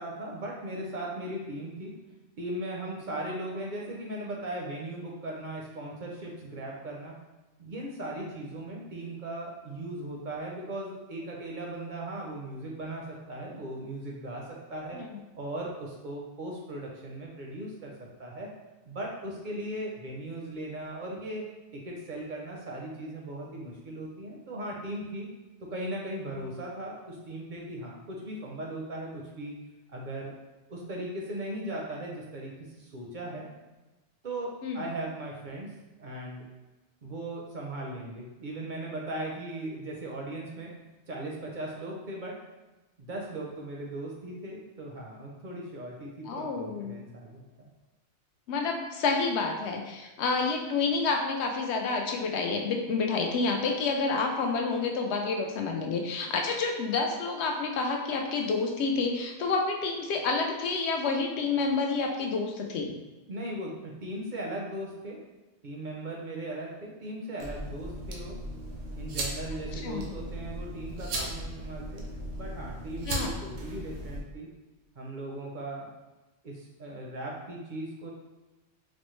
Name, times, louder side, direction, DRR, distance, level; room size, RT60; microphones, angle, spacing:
voice 1, 0.0-1.9 2.4-7.1 7.6-15.0 15.4-17.9 18.2-18.5 18.8-21.5 21.7-25.3 25.7-29.5 29.9-30.3 30.7-33.5 34.2-35.7 36.0-36.4 37.0-40.7 41.1-42.4 43.0-47.7 63.3-65.2 65.6-68.4 68.9-72.0 72.4-74.5 75.0-75.9 76.4-78.1, right 1 dB, 55° right, -2 dB, 0.6 m, -38 dB
voice 2, 46.3-46.9 48.5-62.9 69.8-70.1 73.1-73.3, left 4 dB, 70° left, 2 dB, 0.8 m, -29 dB
sound 1, 67.4-74.2, right 1 dB, 85° right, 1.0 m, -37 dB
4.2 x 2.0 x 3.0 m, 1.1 s
omnidirectional pair, 1.2 m